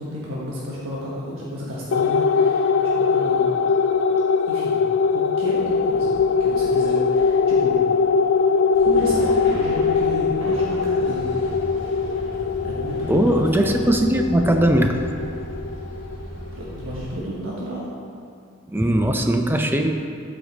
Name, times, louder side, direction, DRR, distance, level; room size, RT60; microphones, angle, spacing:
voice 1, 0.0-3.5 4.5-4.8 5.1-6.1 6.4-7.8 8.8-11.4 12.1-13.9 16.5-17.9, equal, 80° right, -6 dB, 1.3 m, -32 dB
sound 1, 1.9-16.7, left 5 dB, 70° left, 0.3 m, -21 dB
sound 2, 8.7-17.2, right 1 dB, 60° right, 1.7 m, -36 dB
voice 2, 13.1-15.0 18.7-19.9, right 1 dB, 10° right, 5 dB, 0.5 m, -19 dB
12.0 x 5.2 x 4.1 m, 2.3 s
head